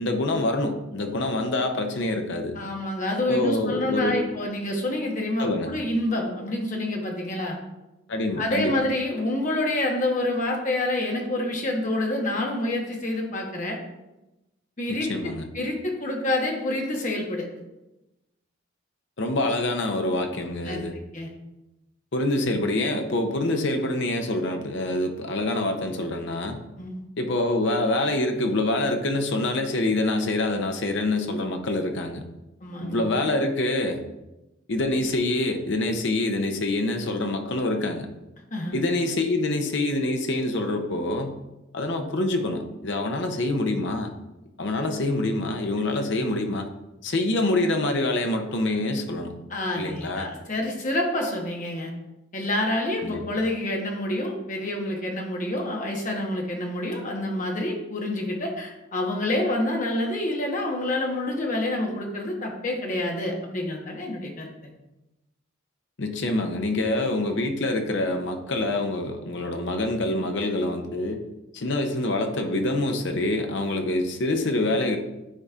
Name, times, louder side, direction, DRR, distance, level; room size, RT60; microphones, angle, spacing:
voice 1, 0.0-2.6 3.3-4.3 5.4-5.7 8.1-8.8 14.9-15.5 19.2-21.0 22.1-26.6 27.2-32.2 32.8-34.0 34.7-38.1 38.7-41.4 41.7-44.1 44.6-46.7 47.0-49.3 49.7-50.3 53.0-53.2 66.0-71.2 71.5-75.0, left 2 dB, 60° left, 5 dB, 0.7 m, -26 dB
voice 2, 2.5-7.6 8.4-13.8 14.8-17.5 20.6-21.3 26.8-27.0 32.6-33.0 38.5-38.8 49.5-51.9 52.3-64.7, left 1 dB, 40° left, 0 dB, 1.0 m, -28 dB
9.9 x 4.1 x 2.4 m, 0.98 s
head